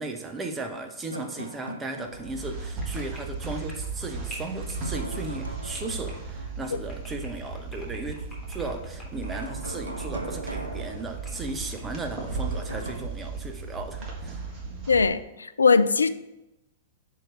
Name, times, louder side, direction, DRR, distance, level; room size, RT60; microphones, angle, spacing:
voice 1, 0.0-8.2 8.5-14.4, right 3 dB, 15° right, 4 dB, 0.8 m, -36 dB
sound 1, 1.1-2.6 2.9-3.0 4.6-6.6 9.2-11.7 12.3-12.9, right 1 dB, 85° right, 0.8 m, -39 dB
sound 2, 2.1-15.1, right 4 dB, 35° right, 1.4 m, -36 dB
sound 3, 2.7-12.5 12.9-13.7, equal, 20° left, 2.3 m, -48 dB
voice 2, 14.9-16.1, left 5 dB, 80° left, 14 dB, 0.3 m, -20 dB
6.0 x 4.8 x 3.9 m, 0.94 s
figure-of-eight pair, 105°, 0 cm